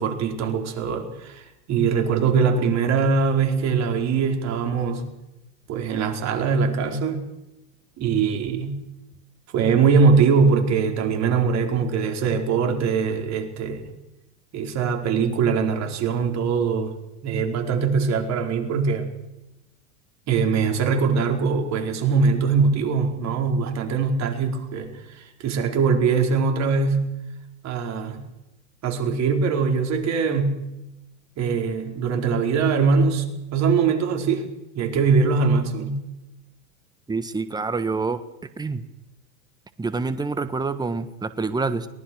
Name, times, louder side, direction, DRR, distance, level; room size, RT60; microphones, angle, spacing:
voice 1, 0.0-5.1 5.7-7.2 8.0-8.8 9.5-13.9 14.5-16.9 17.2-19.1 20.3-27.1 27.6-28.2 28.8-30.6 31.4-34.5 34.7-36.0, right 5 dB, 35° right, 3 dB, 4.6 m, -22 dB
voice 2, 37.1-38.2 38.6-38.8 39.8-41.9, right 4 dB, 10° right, 11 dB, 1.4 m, -27 dB
23.0 x 19.5 x 6.3 m, 0.92 s
hypercardioid pair, 120°, 46 cm